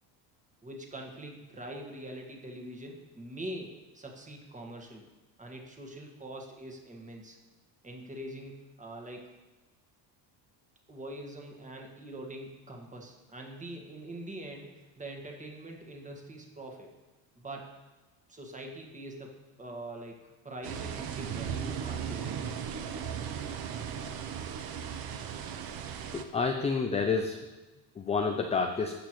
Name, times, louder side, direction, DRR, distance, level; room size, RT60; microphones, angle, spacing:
voice 1, 0.6-5.0 5.4-7.4 7.8-9.3 10.9-16.9 17.3-17.7 18.3-19.3 19.6-22.7, right 1 dB, 15° right, 1 dB, 1.6 m, -43 dB
sound 1, 20.6-26.2, right 8 dB, 50° right, 0.8 m, -37 dB
voice 2, 26.1-27.4 28.0-28.9, left 4 dB, 15° left, 4 dB, 0.3 m, -29 dB
15.0 x 6.1 x 3.1 m, 1.2 s
cardioid pair, 115°, 47 cm